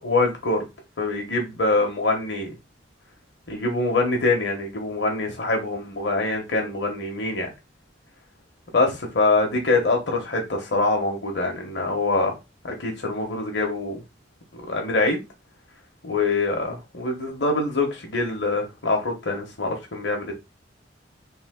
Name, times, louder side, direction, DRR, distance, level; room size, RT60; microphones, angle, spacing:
voice 1, 0.0-0.6 1.0-2.5 3.5-7.5 8.7-8.9 9.1-12.3 12.6-14.0 14.6-15.2 16.0-20.3, left 2 dB, 70° left, 1.1 m, -24 dB
3.5 x 2.7 x 3.6 m
head